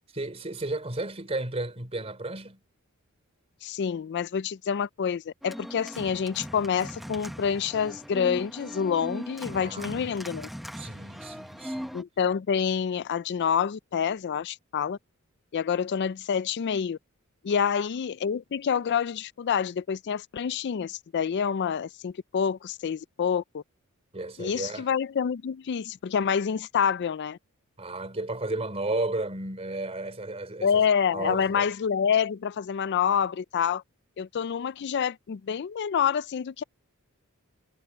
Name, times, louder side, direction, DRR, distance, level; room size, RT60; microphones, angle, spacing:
voice 1, 0.1-2.6 9.5-10.1 10.8-12.0 17.5-17.6 24.1-24.9 27.8-30.8 31.1-31.6, right 2 dB, 30° right, 3.6 m, -33 dB
voice 2, 3.6-10.5 11.9-15.0 15.5-17.0 17.4-23.6 24.4-27.4 30.6-33.8 34.2-36.6, left 7 dB, 50° left, 0.4 m, -27 dB
Organ, 5.4-12.0, equal, ahead, 1.0 m, -39 dB
head